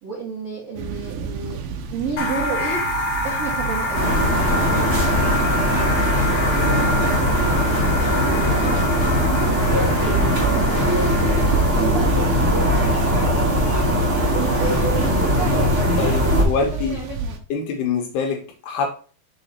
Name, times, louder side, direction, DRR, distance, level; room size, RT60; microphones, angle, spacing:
voice 1, 0.0-2.8 3.2-6.4 6.8-7.7 8.2-13.9 14.2-17.4, right 4 dB, 60° right, -4 dB, 1.8 m, -33 dB
nature ambience twig crack in middle, 0.8-17.4, right 4 dB, 90° right, 2.1 m, -29 dB
sound 1, 2.2-11.9, left 1 dB, 60° left, 2.1 m, -27 dB
sound 2, 3.9-16.4, equal, 75° right, 0.6 m, -20 dB
voice 2, 16.0-17.0 17.5-18.9, left 5 dB, 75° left, 3 dB, 2.6 m, -25 dB
6.7 x 4.0 x 4.1 m, 0.38 s
omnidirectional pair, 5.3 m